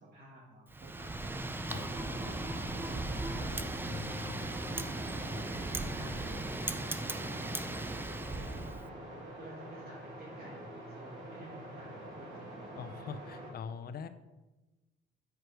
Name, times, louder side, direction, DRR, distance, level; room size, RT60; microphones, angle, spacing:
voice 1, 0.0-2.6 3.4-4.7 5.5-12.6, right 2 dB, 50° right, -5 dB, 1.3 m, -54 dB
Wind, 0.7-8.8, right 2 dB, 10° right, 0.4 m, -37 dB
sound 1, 1.8-13.5, right 1 dB, 75° right, 2.2 m, -46 dB
voice 2, 3.8-4.6 12.7-14.1, left 6 dB, 50° left, 11 dB, 0.5 m, -43 dB
4.8 x 4.7 x 4.7 m, 1.1 s
cardioid pair, 90°, 20 cm